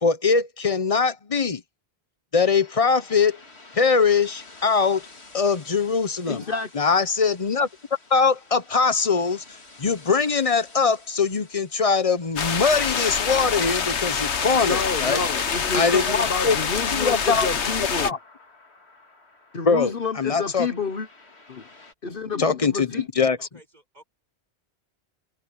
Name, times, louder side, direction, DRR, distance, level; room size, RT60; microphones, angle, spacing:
voice 1, 0.0-1.6 2.3-3.4 3.7-5.1 5.3-6.4 6.7-7.7 8.1-9.4 9.8-15.2 15.7-16.6 16.9-17.5 18.0-18.2 19.6-19.9 20.2-20.7 22.4-22.9 23.2-23.5, left 5 dB, 35° left, 0.8 m, -22 dB
sound 1, 2.4-21.9, left 3 dB, 75° left, 2.9 m, -48 dB
voice 2, 6.3-6.7 14.7-18.2 19.5-21.1 21.5-21.7 22.0-23.1, left 5 dB, 55° left, 1.2 m, -29 dB
sound 2, 12.4-18.1, left 6 dB, 90° left, 1.5 m, -26 dB
voice 3, 23.4-24.0, right 1 dB, 40° right, 5.9 m, -53 dB
omnidirectional pair, 1.1 m